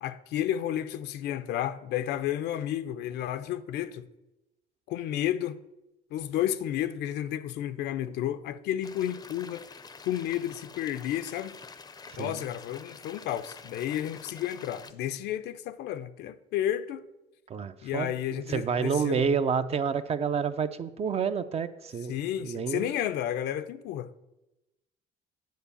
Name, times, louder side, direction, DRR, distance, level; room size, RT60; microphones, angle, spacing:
voice 1, 0.0-4.1 4.9-5.6 6.1-9.7 10.0-11.6 12.2-17.0 17.8-19.3 22.1-24.2, left 11 dB, 80° left, 0.6 m, -32 dB
sound 1, 8.8-14.9, left 5 dB, 25° left, 0.5 m, -47 dB
voice 2, 17.5-22.1 22.4-22.9, right 6 dB, 40° right, 0.5 m, -29 dB
9.3 x 4.5 x 6.9 m
cardioid pair, 110°, 17 cm